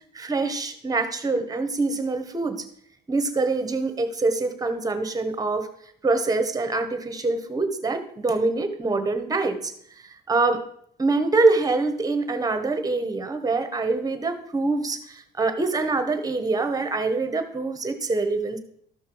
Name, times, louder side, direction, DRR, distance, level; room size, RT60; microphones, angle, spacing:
voice 1, 0.1-2.6 3.1-5.7 6.0-9.7 10.0-10.6 11.0-18.6, right 3 dB, 20° right, 9 dB, 1.3 m, -25 dB
13.5 x 5.9 x 4.7 m, 0.65 s
cardioid pair, 110°, 17 cm